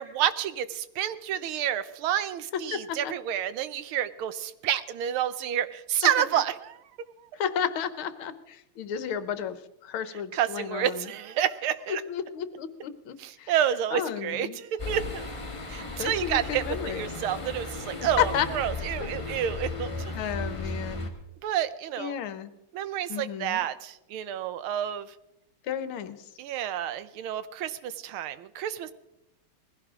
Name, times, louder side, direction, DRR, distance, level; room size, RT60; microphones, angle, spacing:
voice 1, 0.0-6.8 10.3-12.0 13.2-15.3 15.7-19.9 21.4-22.1 22.7-25.1 26.4-28.9, right 10 dB, 75° right, 14 dB, 1.6 m, -29 dB
voice 2, 2.7-3.1 7.3-11.1 11.9-13.5 13.9-14.6 16.0-17.1 18.2-18.5 20.1-21.1 22.0-22.5 23.1-23.6 25.6-26.2, left 9 dB, 75° left, 12 dB, 1.7 m, -32 dB
sound 1, 14.8-21.1, left 3 dB, 15° left, 1.5 m, -35 dB
20.0 x 16.0 x 3.7 m, 0.87 s
omnidirectional pair, 2.4 m